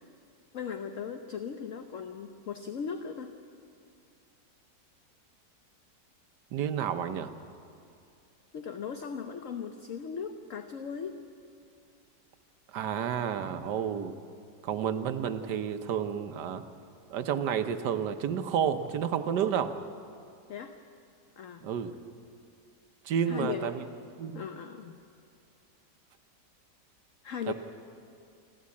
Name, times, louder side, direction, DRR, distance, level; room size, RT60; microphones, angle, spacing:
voice 1, 0.5-3.3 8.5-11.2 20.5-20.7 21.4-21.7 23.2-23.7 24.3-25.0 27.2-27.5, left 7 dB, 55° left, 7 dB, 1.1 m, -38 dB
voice 2, 6.5-7.3 12.7-14.1 14.6-16.6 17.1-19.7 21.6-21.9 23.0-23.8 24.2-24.4 27.5-27.6, right 8 dB, 75° right, 9 dB, 1.5 m, -30 dB
29.0 x 12.5 x 8.5 m, 2.5 s
omnidirectional pair, 1.9 m